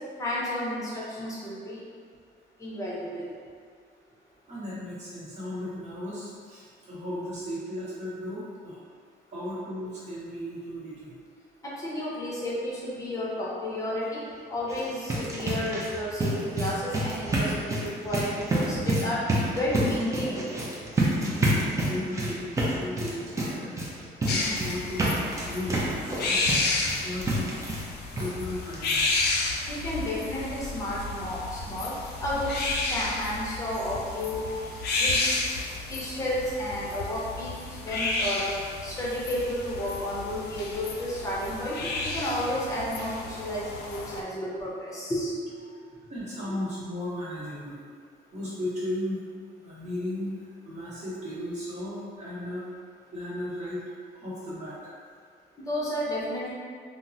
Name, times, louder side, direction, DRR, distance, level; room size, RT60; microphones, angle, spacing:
voice 1, 0.2-0.9 1.2-1.8 2.6-3.2 11.8-14.2 14.5-17.8 18.0-19.2 19.5-20.5 29.7-31.9 32.2-34.4 35.0-35.2 35.9-37.5 37.8-38.5 38.8-41.7 42.1-43.1 43.4-45.3 55.7-56.5, left 1 dB, 20° left, -7 dB, 0.7 m, -31 dB
voice 2, 4.5-8.8 9.3-11.2 21.0-23.8 24.2-26.5 27.0-27.6 28.1-29.1 46.1-47.8 48.3-49.2 49.5-52.6 53.1-53.8 54.1-54.8, left 1 dB, 40° right, -9 dB, 1.0 m, -35 dB
sound 1, 14.6-27.9 28.2-28.3 28.7-28.8 29.1-29.2, right 1 dB, 15° right, 0.5 m, -29 dB
sound 2, 24.3-44.2, left 3 dB, 70° left, 0.4 m, -32 dB
3.5 x 2.0 x 2.7 m, 2.1 s
cardioid pair, 145°, 18 cm